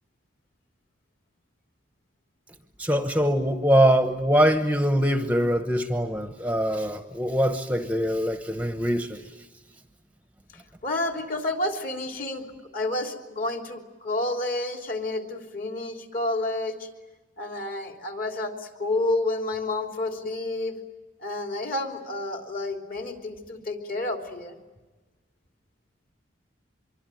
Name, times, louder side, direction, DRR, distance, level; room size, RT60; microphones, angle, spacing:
voice 1, 2.8-9.2, equal, 5° right, 7 dB, 1.0 m, -23 dB
voice 2, 10.5-16.9 17.4-20.8 21.2-24.6, left 2 dB, 45° left, 4 dB, 3.3 m, -30 dB
25.5 x 23.5 x 9.2 m, 1.2 s
head